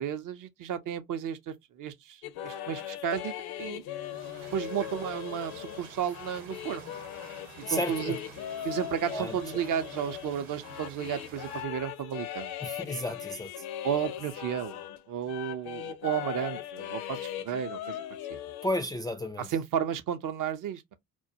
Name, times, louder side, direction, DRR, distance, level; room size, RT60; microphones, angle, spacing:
voice 1, 0.0-3.3 3.6-3.8 4.5-6.8 7.7-8.2 8.6-12.5 13.8-18.0 18.3-18.4 19.4-21.0, right 8 dB, 50° right, 0.6 m, -33 dB
sound 1, 2.2-15.0 15.3-18.7, left 11 dB, 65° left, 0.5 m, -39 dB
sound 2, 3.9-11.6, right 4 dB, 90° right, 0.9 m, -49 dB
voice 2, 7.7-8.2 9.1-9.3 12.6-13.5 18.6-19.5, left 1 dB, 10° left, 0.3 m, -32 dB
2.2 x 2.1 x 2.6 m
hypercardioid pair, 55°, 41 cm